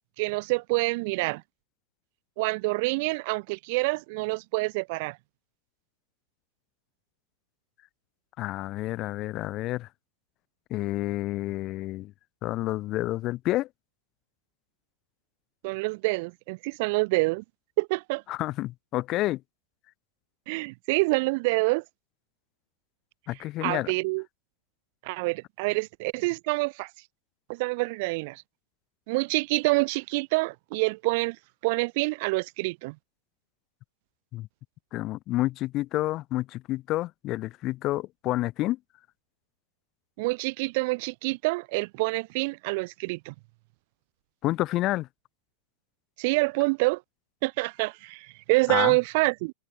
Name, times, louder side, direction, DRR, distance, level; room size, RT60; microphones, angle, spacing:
voice 1, 0.2-1.4 2.4-5.2 15.6-17.4 17.8-18.2 20.5-21.8 23.6-24.2 25.0-26.9 27.5-28.4 29.1-31.4 31.6-33.0 40.2-43.3 46.2-47.0 47.4-49.5, right 26 dB, 50° right, 0.5 m, -27 dB
voice 2, 8.4-9.9 10.7-12.1 12.4-13.7 18.3-19.4 23.3-23.9 34.3-34.5 34.9-38.8 44.4-45.1 48.7-49.0, left 16 dB, 40° left, 0.5 m, -29 dB
open air
figure-of-eight pair, 90°, 0 cm